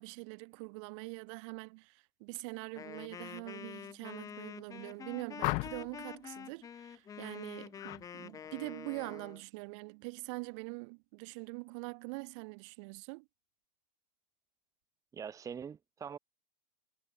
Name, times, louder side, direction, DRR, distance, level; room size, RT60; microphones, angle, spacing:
voice 1, 0.0-13.3, right 32 dB, 45° right, 2.5 m, -44 dB
Wind instrument woodwind instrument, 2.8-9.4, left 8 dB, 15° left, 1.1 m, -47 dB
sound 1, 5.4-6.0 7.8-8.0 8.4-8.8, left 29 dB, 40° left, 1.1 m, -36 dB
voice 2, 15.1-16.2, right 7 dB, 15° right, 1.9 m, -43 dB
supercardioid pair, 145°, 21 cm